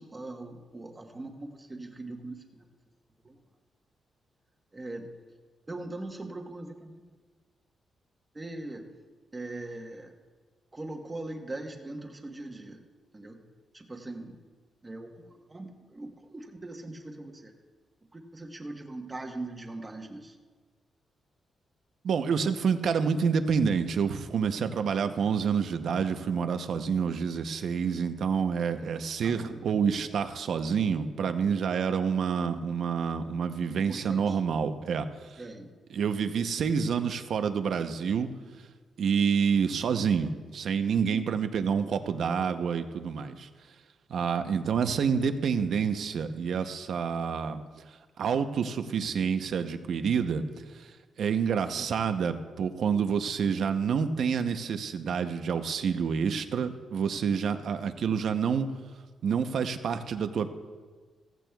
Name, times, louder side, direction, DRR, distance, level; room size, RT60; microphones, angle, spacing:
voice 1, 0.0-2.7 3.2-3.4 4.7-5.1 5.7-7.0 8.3-8.9 9.3-10.1 10.7-12.8 13.1-13.4 13.7-14.4 14.8-17.5 18.1-20.4 29.2-29.6 33.9-34.4 35.4-35.7 41.1-41.3, right 2 dB, 20° right, 3 dB, 1.1 m, -41 dB
voice 2, 22.0-35.4 35.9-38.3 39.0-43.5 44.1-47.6 48.2-50.4 50.8-50.9 51.2-58.7 59.2-60.5, right 6 dB, 65° right, 9 dB, 0.7 m, -28 dB
15.5 x 15.0 x 2.3 m, 1.5 s
wide cardioid pair, 135°, 0 cm